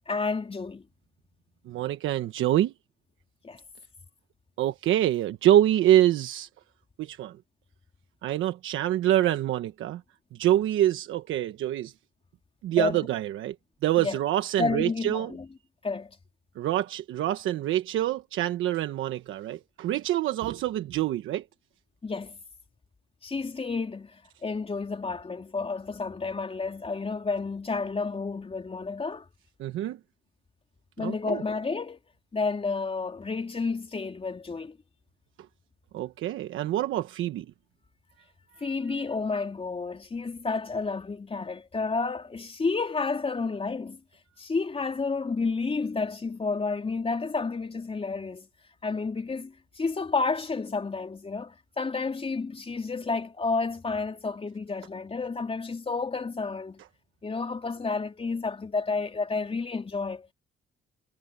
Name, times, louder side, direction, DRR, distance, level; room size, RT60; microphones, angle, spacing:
voice 1, 0.1-0.8 3.4-3.6 12.8-13.0 14.0-14.2 14.6-15.5 15.8-16.2 22.0-22.4 23.2-29.2 31.0-32.0 32.3-34.8 38.6-44.0 44.4-48.5 48.8-56.8 57.2-60.3, left 4 dB, 30° left, 3.8 m, -30 dB
voice 2, 1.7-2.7 4.6-6.5 7.0-7.4 8.2-10.0 10.4-11.9 12.6-13.5 13.8-15.3 16.6-21.4 29.6-30.0 31.0-31.4 35.9-37.4, right 13 dB, 80° right, 1.2 m, -25 dB
cardioid pair, 90°, 20 cm